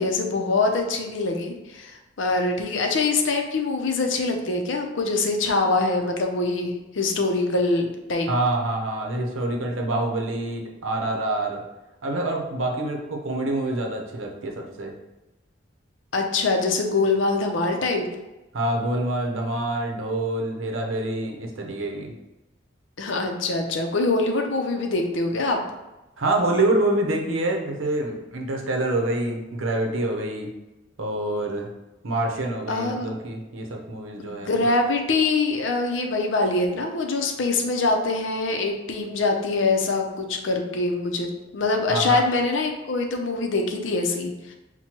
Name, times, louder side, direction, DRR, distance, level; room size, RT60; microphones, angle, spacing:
voice 1, 0.0-8.3 16.1-18.0 23.0-25.6 32.7-33.1 34.2-41.3 41.5-44.5, left 3 dB, 75° left, 3 dB, 0.6 m, -24 dB
voice 2, 8.3-11.6 12.0-14.9 18.5-22.1 26.2-30.5 31.0-31.7 32.0-34.7 41.9-42.2, right 2 dB, 90° right, 1 dB, 0.7 m, -26 dB
5.8 x 2.2 x 2.9 m, 1.0 s
head